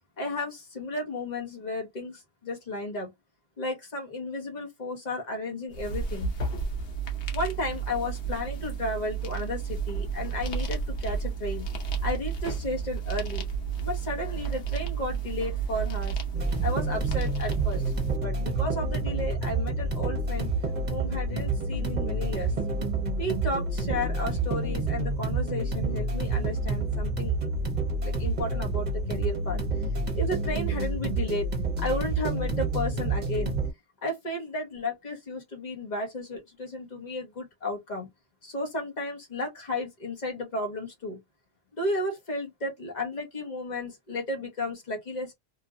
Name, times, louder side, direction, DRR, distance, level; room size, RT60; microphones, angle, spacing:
voice 1, 0.2-3.1 3.6-6.3 7.3-11.7 12.0-13.4 13.8-16.2 16.6-17.9 18.2-20.5 20.9-22.5 23.2-27.4 28.0-29.6 30.1-31.5 31.8-33.5 34.0-38.1 38.4-41.2 41.7-45.3, left 2 dB, 40° left, 1.2 m, -33 dB
sound 1, 5.7-18.2, right 6 dB, 90° left, 1.1 m, -32 dB
sound 2, 16.3-33.7, right 2 dB, 45° right, 1.0 m, -28 dB
3.0 x 2.5 x 2.5 m
omnidirectional pair, 1.1 m